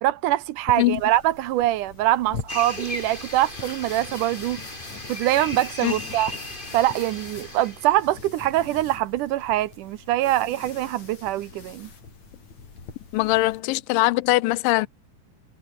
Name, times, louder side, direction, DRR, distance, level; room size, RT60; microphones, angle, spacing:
voice 1, 0.0-4.6 5.1-6.3 6.7-11.9, right 15 dB, 75° right, 2.2 m, -23 dB
sound 1, 0.7-13.6, left 5 dB, 55° left, 5.4 m, -42 dB
sound 2, 2.5-8.0, left 1 dB, 15° left, 6.7 m, -36 dB
voice 2, 13.1-14.9, left 20 dB, 85° left, 2.3 m, -21 dB
omnidirectional pair, 4.0 m